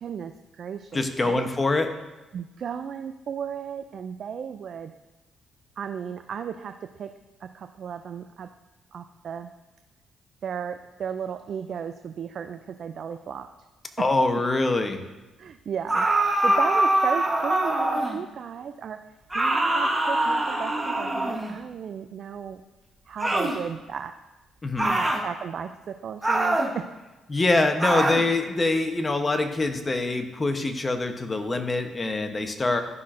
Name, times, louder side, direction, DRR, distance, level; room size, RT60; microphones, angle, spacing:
voice 1, 0.0-1.5 2.3-4.9 5.8-6.7 7.0-7.1 7.4-8.5 8.9-9.5 10.4-13.5 15.4-16.1 16.4-19.0 19.3-22.6 23.1-24.1 24.8-26.8, right 7 dB, 60° right, 8 dB, 0.4 m, -34 dB
voice 2, 0.9-1.9 14.0-15.0 24.6-25.0 27.3-32.8, left 2 dB, 25° left, 6 dB, 0.8 m, -24 dB
sound 1, 15.9-18.2 19.3-21.6 23.2-23.6 24.8-25.2 26.2-26.7 27.8-28.3, right 1 dB, 10° right, 1.1 m, -23 dB
12.5 x 5.7 x 2.5 m, 1.1 s
cardioid pair, 90°, 0 cm